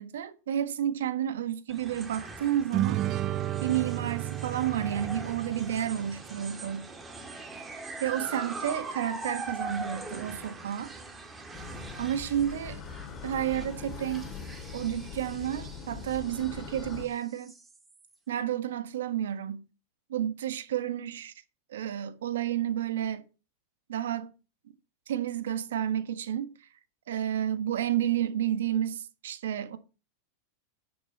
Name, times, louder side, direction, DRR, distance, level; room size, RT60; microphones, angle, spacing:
voice 1, 0.0-3.0 3.6-6.9 8.0-10.9 12.0-12.8 13.2-14.3 14.7-17.5 18.3-19.6 20.1-21.3 21.7-23.2 23.9-24.3 25.1-26.6 27.1-29.8, right 10 dB, 85° right, 1.3 m, -31 dB
sound 1, 1.7-18.2, right 3 dB, 15° right, 2.3 m, -42 dB
sound 2, 2.7-6.3, right 13 dB, 40° right, 0.6 m, -32 dB
sound 3, 11.5-17.1, left 6 dB, 30° left, 2.6 m, -42 dB
11.5 x 7.8 x 4.1 m
hypercardioid pair, 125°, 0 cm